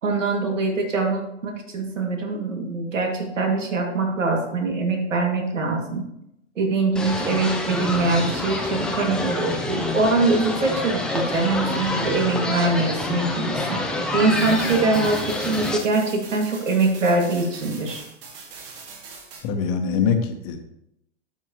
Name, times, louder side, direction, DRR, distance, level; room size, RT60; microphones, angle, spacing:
voice 1, 0.0-6.1 6.6-13.8 14.1-18.0, right 3 dB, 80° right, 2 dB, 2.3 m, -23 dB
sound 1, 7.0-15.8, left 2 dB, ahead, 0.6 m, -27 dB
sound 2, 14.3-19.4, right 4 dB, 45° right, 2.3 m, -41 dB
voice 2, 19.4-20.6, left 6 dB, 35° left, 6 dB, 1.2 m, -23 dB
12.5 x 6.1 x 3.0 m, 0.81 s
hypercardioid pair, 120°, 37 cm